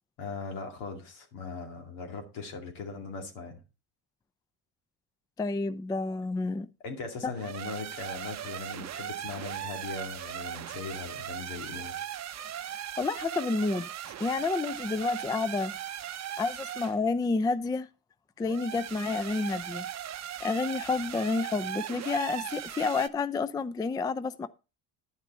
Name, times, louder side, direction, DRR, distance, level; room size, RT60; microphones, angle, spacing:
voice 1, 0.2-3.6 6.8-12.1, left 4 dB, 75° left, 2.5 m, -39 dB
voice 2, 5.4-6.7 7.2-7.3 13.0-13.9 14.2-15.7 16.4-17.9 18.4-19.9 20.4-24.5, left 3 dB, 10° left, 0.4 m, -29 dB
sound 1, 7.3-17.0 18.4-23.1, right 10 dB, 35° right, 0.7 m, -38 dB
10.5 x 6.6 x 4.2 m
supercardioid pair, 70°, 45 cm